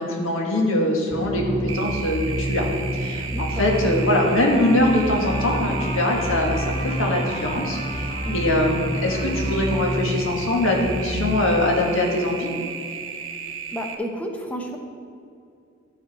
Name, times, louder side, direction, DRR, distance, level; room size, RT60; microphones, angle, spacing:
voice 1, 0.0-2.7 2.9-12.5, left 1 dB, 85° left, 0 dB, 1.7 m, -22 dB
sound 1, 1.1-11.8, equal, 20° right, 0.6 m, -29 dB
sound 2, 1.7-13.9, right 6 dB, 75° right, 0.8 m, -35 dB
voice 2, 3.3-3.7 8.2-8.5 13.7-14.8, equal, 10° left, 2 dB, 0.9 m, -31 dB
Trumpet, 3.5-10.0, left 2 dB, 30° left, 0.9 m, -38 dB
13.5 x 5.0 x 4.3 m, 2.4 s
head